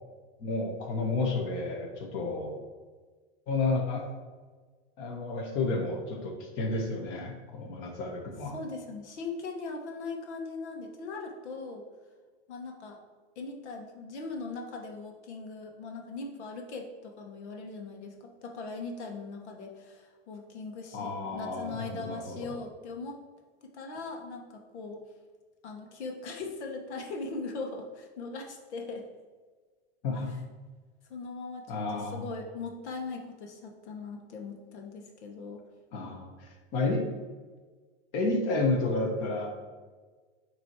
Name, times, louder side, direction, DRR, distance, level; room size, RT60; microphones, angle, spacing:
voice 1, 0.4-2.6 3.5-4.1 5.0-8.5 20.9-22.5 30.0-30.3 31.7-32.2 35.9-37.0 38.1-39.5, left 3 dB, 35° left, 1 dB, 1.3 m, -31 dB
voice 2, 8.5-11.9 12.5-13.0 13.3-23.2 23.6-25.0 25.6-29.0 31.1-35.6, left 3 dB, 80° left, 2 dB, 1.4 m, -40 dB
8.7 x 3.1 x 4.6 m, 1.4 s
supercardioid pair, 160°, 33 cm